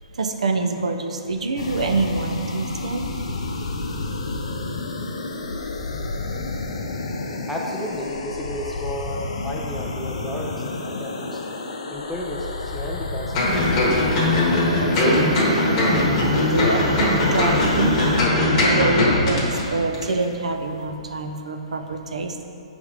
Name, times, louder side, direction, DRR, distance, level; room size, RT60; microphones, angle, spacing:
voice 1, 0.1-3.1 14.8-22.5, right 3 dB, 80° right, 6 dB, 0.5 m, -26 dB
sound 1, 1.6-18.3, left 3 dB, 65° left, 0.6 m, -30 dB
voice 2, 7.5-11.4 11.9-13.5, left 1 dB, ahead, -4 dB, 0.3 m, -33 dB
sound 2, 13.3-19.6 19.9-20.1, left 1 dB, 20° left, 1.0 m, -20 dB
6.4 x 3.5 x 4.8 m, 2.9 s
hypercardioid pair, 175°, 4 cm